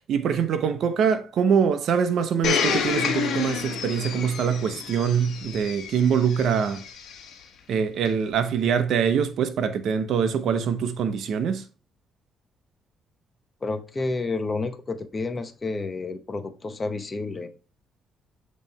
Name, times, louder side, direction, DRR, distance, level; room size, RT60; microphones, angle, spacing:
voice 1, 0.1-6.8 7.7-11.6, right 7 dB, 70° right, 0.7 m, -24 dB
Domestic sounds home sounds, 2.4-7.3 8.0-8.1, left 6 dB, 75° left, 1.1 m, -29 dB
voice 2, 13.6-17.5, left 3 dB, 30° left, 0.8 m, -30 dB
7.5 x 3.1 x 4.1 m
cardioid pair, 90°, 0 cm